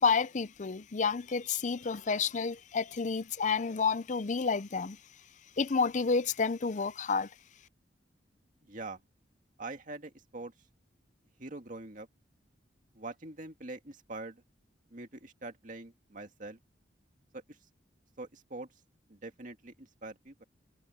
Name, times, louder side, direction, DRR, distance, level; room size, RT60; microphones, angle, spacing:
voice 1, 0.0-5.0 5.6-7.3, left 5 dB, 40° left, 0.5 m, -30 dB
voice 2, 8.6-9.0 9.6-10.5 11.4-12.1 13.0-14.4 14.9-16.6 17.3-17.6 18.2-18.7 19.1-20.4, right 2 dB, 45° right, 2.1 m, -44 dB
head